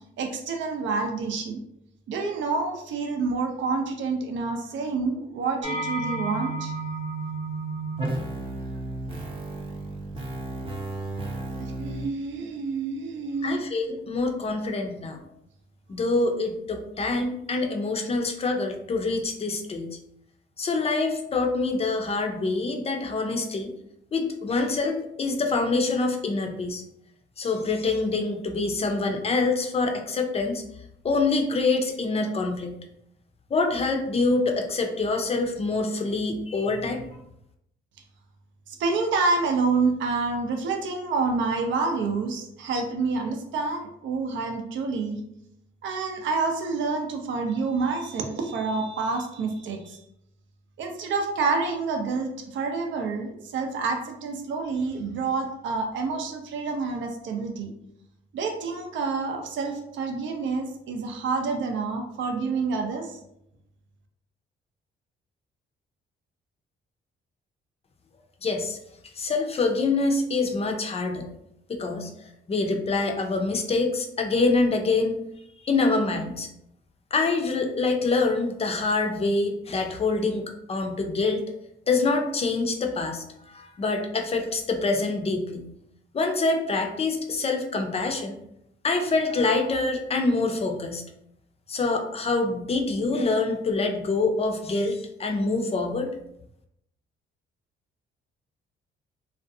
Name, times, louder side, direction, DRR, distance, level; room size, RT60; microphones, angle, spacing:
voice 1, 0.2-1.6 2.1-6.7 11.8-13.6 38.7-45.2 45.8-50.0 50.8-57.7 58.3-63.2, right 4 dB, 70° right, 3 dB, 0.5 m, -28 dB
sound 1, 5.6-12.1, right 2 dB, 25° right, 0.7 m, -32 dB
voice 2, 13.4-15.2 15.9-20.0 20.6-23.7 24.1-26.8 27.4-30.6 31.0-32.8 33.5-37.0 68.4-68.8 69.2-71.3 71.7-75.2 75.6-76.5 77.1-81.4 81.9-85.7 86.1-88.3 88.8-91.0 91.7-96.1, left 3 dB, 30° left, 4 dB, 0.5 m, -25 dB
2.5 x 2.1 x 2.6 m, 0.77 s
cardioid pair, 90°, 20 cm